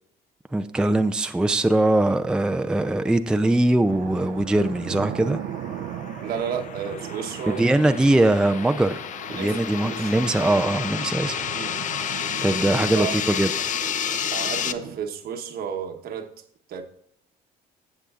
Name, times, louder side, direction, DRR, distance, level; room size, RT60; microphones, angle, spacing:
voice 1, 0.5-5.4 7.5-9.0 9.3-11.5 12.4-13.7, right 1 dB, 5° right, 0.4 m, -21 dB
sound 1, 3.9-15.0, right 10 dB, 80° right, 0.7 m, -38 dB
sound 2, 4.3-14.7, left 9 dB, 50° left, 0.6 m, -31 dB
voice 2, 6.2-8.0 9.3-10.2 11.5-11.8 13.0-13.2 14.3-16.3 16.7-16.8, right 7 dB, 65° right, 1.2 m, -32 dB
15.0 x 7.8 x 2.4 m
cardioid pair, 110°, 17 cm